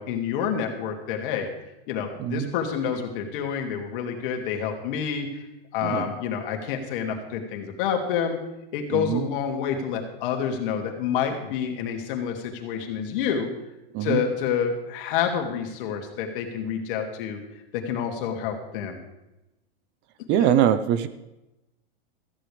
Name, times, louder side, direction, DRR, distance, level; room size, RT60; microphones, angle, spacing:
voice 1, 0.0-1.5 1.9-5.5 5.7-8.4 8.7-13.5 14.0-17.4 17.7-19.0 20.4-20.5, left 7 dB, 60° left, 3 dB, 2.6 m, -28 dB
voice 2, 2.2-2.5 5.8-6.1 8.9-9.2 13.9-14.2 20.3-21.1, right 10 dB, 35° right, 13 dB, 0.7 m, -22 dB
16.0 x 14.5 x 3.4 m, 0.95 s
supercardioid pair, 140°, 31 cm